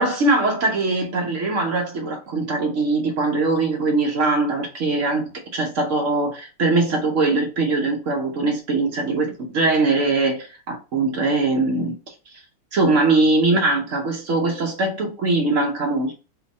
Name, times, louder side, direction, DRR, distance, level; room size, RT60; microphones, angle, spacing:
voice 1, 0.0-11.9 12.7-16.2, right 3 dB, 85° right, 0.6 m, -21 dB
4.4 x 2.2 x 4.0 m
omnidirectional pair, 2.4 m